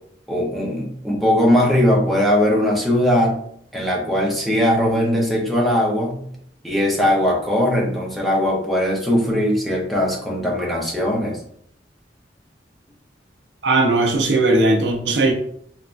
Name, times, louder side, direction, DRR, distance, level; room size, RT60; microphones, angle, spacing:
voice 1, 0.3-3.4 3.7-6.2 6.6-11.4, left 1 dB, ahead, -3 dB, 0.6 m, -19 dB
voice 2, 13.6-15.3, right 2 dB, 75° right, 3 dB, 0.5 m, -17 dB
3.1 x 2.1 x 2.5 m, 0.67 s
head